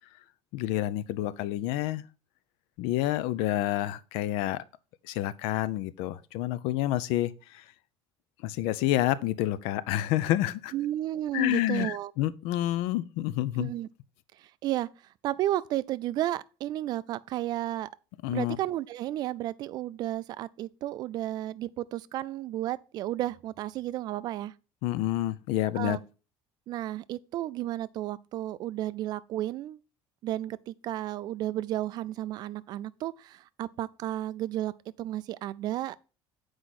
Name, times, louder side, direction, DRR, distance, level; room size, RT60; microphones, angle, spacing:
voice 1, 0.5-2.0 2.8-4.6 5.0-7.6 8.4-10.7 11.3-13.7 18.2-18.6 24.8-26.0, left 14 dB, 85° left, 0.5 m, -28 dB
voice 2, 10.7-12.1 13.6-13.9 14.4-14.9 15.2-17.9 18.3-24.5 25.8-26.0 26.7-29.8 30.2-34.7 35.0-36.0, right 14 dB, 45° right, 0.4 m, -33 dB
7.8 x 4.8 x 4.1 m
cardioid pair, 165°, 10 cm